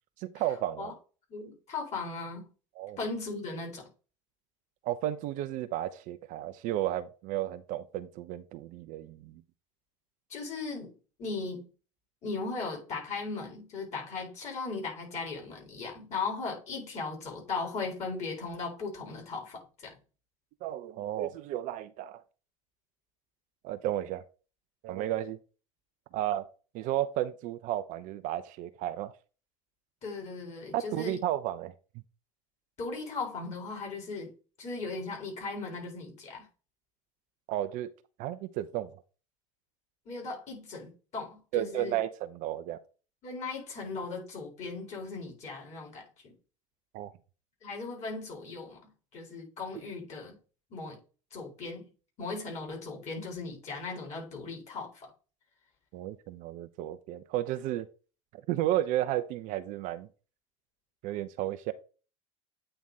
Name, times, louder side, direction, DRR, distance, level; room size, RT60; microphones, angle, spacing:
voice 1, 0.2-0.9 2.8-3.0 4.8-9.4 20.6-22.2 23.6-24.2 24.8-25.4 26.1-26.5 26.7-29.1 30.7-31.7 37.5-37.9 38.2-38.9 41.5-42.8 46.9-47.1 55.9-57.9 58.5-60.1 61.0-61.7, right 13 dB, 50° right, 0.6 m, -33 dB
voice 2, 1.3-2.5 3.0-3.8 10.3-10.9 11.2-11.7 12.2-20.0 30.0-31.2 32.8-34.3 34.6-36.5 40.1-41.9 43.2-46.3 47.6-48.8 49.1-50.4 50.7-51.0 51.3-51.8 52.2-55.1, left 4 dB, 40° left, 4.1 m, -37 dB
8.8 x 3.4 x 4.0 m
figure-of-eight pair, 75°, 17 cm